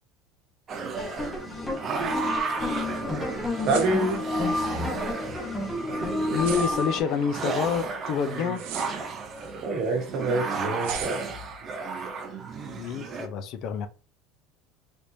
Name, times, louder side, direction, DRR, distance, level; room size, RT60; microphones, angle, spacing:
sound 1, 0.7-13.3, right 5 dB, 30° right, 0.5 m, -34 dB
sound 2, 1.0-7.0, left 2 dB, 10° left, 0.8 m, -30 dB
sound 3, 3.5-4.9 5.3-5.4 6.4-7.0 8.6-9.5 9.9-10.0 10.8-11.4, right 8 dB, 75° right, 0.6 m, -39 dB
voice 1, 3.7-4.3 9.6-11.2, right 2 dB, 50° right, 1.0 m, -26 dB
voice 2, 6.3-8.6 12.8-13.9, left 6 dB, 45° left, 0.4 m, -28 dB
3.3 x 2.9 x 2.6 m
cardioid pair, 155°, 0 cm